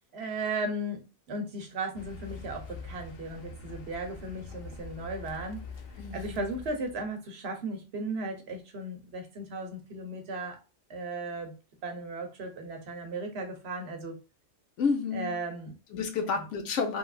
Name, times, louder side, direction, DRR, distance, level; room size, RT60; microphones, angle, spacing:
voice 1, 0.1-5.6 6.1-10.6 10.9-11.6 11.8-14.2 15.1-15.8 16.4-16.5, right 2 dB, 65° right, 1.0 m, -36 dB
Car, 1.9-7.1, left 4 dB, 60° left, 0.7 m, -44 dB
voice 2, 6.0-6.4 14.8-15.4 15.9-17.0, left 5 dB, 80° left, 1.0 m, -30 dB
3.2 x 2.3 x 2.3 m
omnidirectional pair, 1.2 m